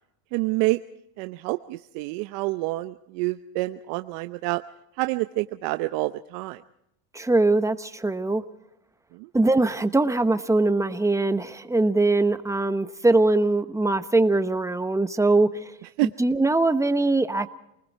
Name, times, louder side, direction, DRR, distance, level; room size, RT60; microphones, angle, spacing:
voice 1, 0.3-0.8 1.2-4.6 4.9-6.6 9.1-9.3 16.0-16.1, right 21 dB, 70° right, 10 dB, 0.9 m, -27 dB
voice 2, 7.1-8.4 9.3-15.5 16.2-17.5, right 2 dB, 5° right, 11 dB, 1.0 m, -22 dB
29.0 x 20.0 x 4.6 m, 0.80 s
supercardioid pair, 120°, 44 cm